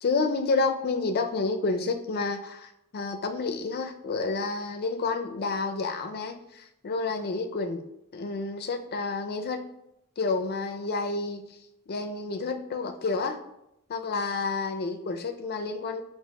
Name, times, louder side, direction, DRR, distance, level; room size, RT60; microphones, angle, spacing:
voice 1, 0.0-7.8 8.1-9.6 10.2-11.4 11.9-13.4 13.9-16.0, left 3 dB, 45° left, 7 dB, 0.4 m, -29 dB
7.4 x 2.8 x 2.2 m, 0.82 s
head